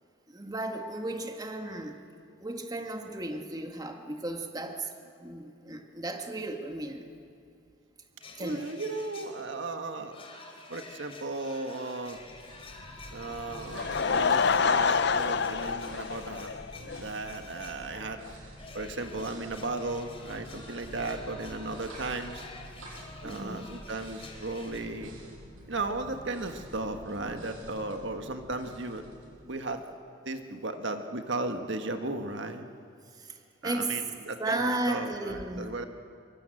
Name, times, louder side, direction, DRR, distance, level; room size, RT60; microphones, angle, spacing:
voice 1, 0.3-2.0 2.4-4.9 5.2-7.1 8.4-8.7 13.2-13.3 14.3-14.4 23.2-23.7 33.1-33.4 33.6-34.0 34.4-35.7, right 2 dB, 20° right, 4 dB, 1.8 m, -34 dB
sound 1, 8.2-9.6 10.1-17.8 18.5-24.8, left 3 dB, 30° left, 3.7 m, -49 dB
voice 2, 8.4-10.2 10.7-12.2 13.1-16.5 17.0-18.2 18.7-22.5 23.2-25.1 25.7-29.0 29.4-29.9 30.2-32.7 33.6-35.8, right 2 dB, 60° right, 6 dB, 1.6 m, -35 dB
sound 2, 12.1-29.9, equal, 80° right, 6.9 m, -48 dB
Laughter / Crowd, 13.5-17.0 17.3-17.4 18.0-18.1 18.2-18.3, left 5 dB, 55° left, 0.6 m, -27 dB
26.5 x 24.5 x 7.8 m, 2.4 s
head